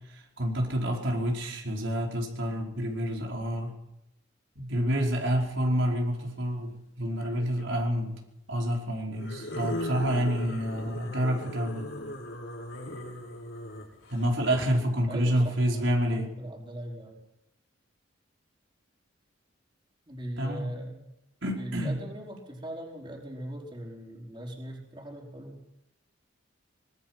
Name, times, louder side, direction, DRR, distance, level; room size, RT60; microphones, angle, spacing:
voice 1, 0.1-3.7 4.6-8.1 8.5-11.9 14.1-16.3 20.4-20.7 21.4-22.0, equal, 75° right, -1 dB, 5.0 m, -28 dB
sound 1, 5.2-5.6 7.2-7.7 9.1-14.6, left 1 dB, 85° left, 7.2 m, -38 dB
voice 2, 15.1-17.2 20.1-21.1 21.5-25.6, right 1 dB, 25° right, -1 dB, 4.8 m, -40 dB
25.0 x 22.0 x 5.9 m, 0.85 s
head